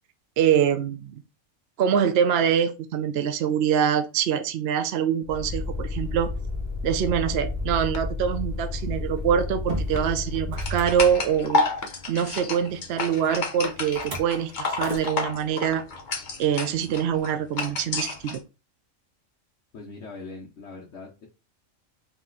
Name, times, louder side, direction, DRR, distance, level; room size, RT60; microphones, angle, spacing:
voice 1, 0.4-1.2 1.8-6.3 6.8-11.6 12.1-15.8 16.4-18.4, right 8 dB, 65° right, 0.7 m, -24 dB
Motor vehicle (road), 5.2-11.7 13.9-14.3 14.7-15.1, left 2 dB, 45° right, 1.4 m, -31 dB
sound 1, 7.9-8.6 9.0-9.1 9.9-10.5 11.8-12.4 13.6-14.2 14.5-15.3 15.7-16.2 17.2-18.1, left 2 dB, 25° left, 0.4 m, -43 dB
sound 2, 10.6-18.4, left 3 dB, 45° left, 0.8 m, -30 dB
voice 2, 19.7-21.3, left 3 dB, 65° left, 1.2 m, -41 dB
4.1 x 3.0 x 3.8 m
omnidirectional pair, 1.4 m